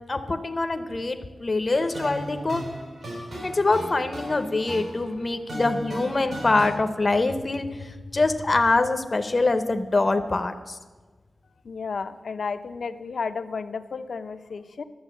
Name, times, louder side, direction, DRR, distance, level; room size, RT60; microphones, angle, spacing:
voice 1, 0.1-2.6 3.4-10.8, left 3 dB, 35° left, 8 dB, 0.7 m, -24 dB
sound 1, 1.7-6.7, equal, 75° right, 4.5 m, -36 dB
voice 2, 11.6-14.8, left 5 dB, 70° left, 10 dB, 0.6 m, -32 dB
12.0 x 6.3 x 8.2 m, 1.3 s
wide cardioid pair, 125°, 0 cm